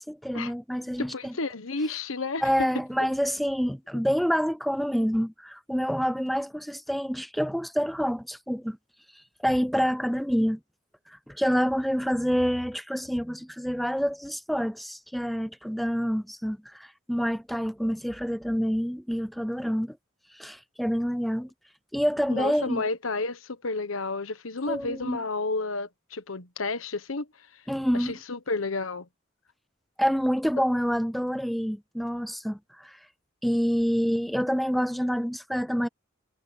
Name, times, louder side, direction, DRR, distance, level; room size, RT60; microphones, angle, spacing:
voice 1, 0.0-1.3 2.4-8.8 9.4-10.6 11.1-20.0 20.3-21.5 21.9-22.8 24.7-25.2 27.7-28.1 30.0-33.0 33.4-35.9, equal, ahead, 0.4 m, -27 dB
voice 2, 1.0-2.4 22.3-27.3 27.9-29.1, left 3 dB, 85° left, 1.3 m, -31 dB
head